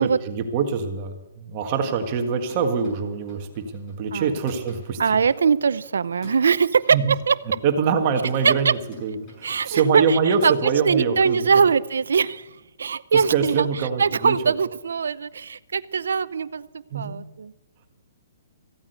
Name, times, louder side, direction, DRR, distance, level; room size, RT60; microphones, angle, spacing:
voice 1, 0.0-5.2 6.9-7.1 7.6-11.5 13.3-14.5 16.9-17.2, right 6 dB, 35° right, 5 dB, 1.6 m, -24 dB
sound 1, 1.8-12.7, left 2 dB, 25° left, 5.7 m, -50 dB
voice 2, 5.0-7.4 8.4-8.7 9.4-10.6 10.9-12.5 12.8-13.7 14.0-16.7 16.9-17.5, right 6 dB, 85° right, 17 dB, 0.6 m, -21 dB
15.0 x 8.8 x 8.0 m, 1.1 s
hypercardioid pair, 155°, 0 cm